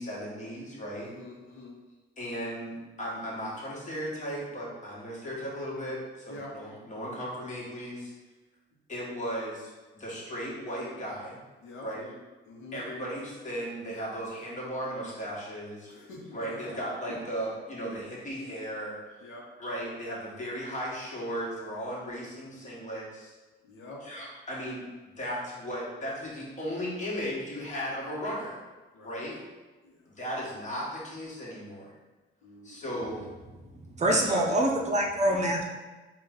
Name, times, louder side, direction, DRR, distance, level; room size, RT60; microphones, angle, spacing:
voice 1, 0.0-1.1 2.2-8.1 8.9-11.4 11.8-12.1 12.7-15.9 16.3-19.0 19.6-23.3 24.0-24.9 25.2-28.6 29.0-29.4 30.1-31.9 32.6-33.3 34.1-34.6, equal, 40° left, -5 dB, 1.4 m, -36 dB
voice 2, 1.0-1.7 6.3-6.5 11.6-11.9 12.5-12.8 15.9-16.7 19.2-19.4 23.6-24.0 28.9-29.3 29.8-30.1 32.4-33.1, left 2 dB, 80° left, -2 dB, 0.9 m, -46 dB
voice 3, 33.9-35.6, right 1 dB, 35° right, 1 dB, 0.6 m, -25 dB
3.8 x 2.4 x 3.7 m, 1.2 s
cardioid pair, 90°, 20 cm